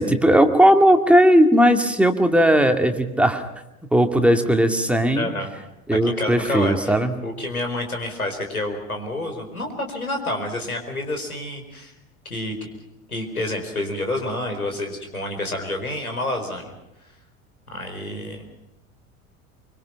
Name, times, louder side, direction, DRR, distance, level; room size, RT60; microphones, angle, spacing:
voice 1, 0.0-3.4 3.9-5.3 5.9-7.1, equal, 5° right, 5 dB, 2.2 m, -17 dB
voice 2, 5.1-5.5 5.9-7.0 7.2-11.9 12.3-12.7 13.1-16.7 17.7-18.4, left 1 dB, 85° left, 5 dB, 4.5 m, -28 dB
25.0 x 24.5 x 5.8 m, 0.91 s
figure-of-eight pair, 75°, 42 cm